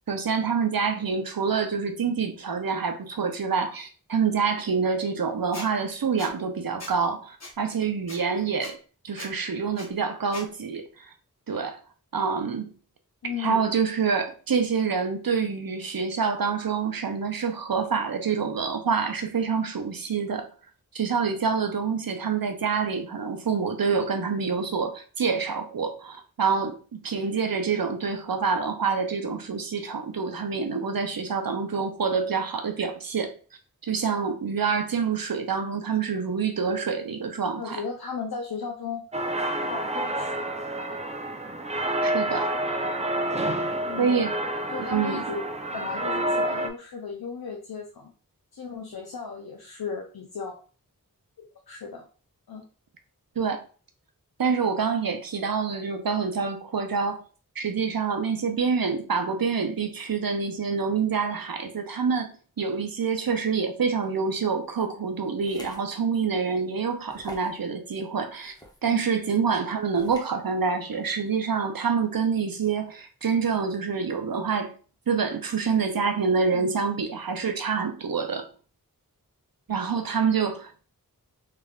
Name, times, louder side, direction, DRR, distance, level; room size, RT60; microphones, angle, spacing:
voice 1, 0.1-8.8 9.0-11.1 11.5-11.8 12.1-12.7 13.4-20.5 20.9-33.4 33.9-37.8 42.0-42.5 44.0-44.3 44.8-45.2 53.4-53.6 54.4-57.2 57.6-62.3 62.6-68.5 68.8-74.8 75.1-78.5 79.7-80.8, right 5 dB, 70° right, 0.6 m, -27 dB
Squeak, 5.5-5.7 6.2-6.3 6.8-6.9 7.4-7.5 8.1-8.2 8.6-8.7 9.2-9.3 9.8-9.9 10.3-10.5, left 2 dB, 45° left, 0.8 m, -39 dB
voice 2, 13.2-13.7 37.5-39.0 39.6-40.3 43.8-44.2 44.7-45.4 45.7-48.1 48.5-50.6 51.7-52.1 52.5-52.6 68.8-69.0 76.5-76.7, left 5 dB, 80° left, 0.6 m, -35 dB
sound 1, 39.1-46.7, right 1 dB, 20° right, 0.5 m, -28 dB
sound 2, 65.4-65.8 66.3-66.4 67.1-67.6 68.4-68.8 69.9-70.3, equal, 10° left, 0.8 m, -43 dB
3.4 x 3.3 x 2.4 m
wide cardioid pair, 45°, 36 cm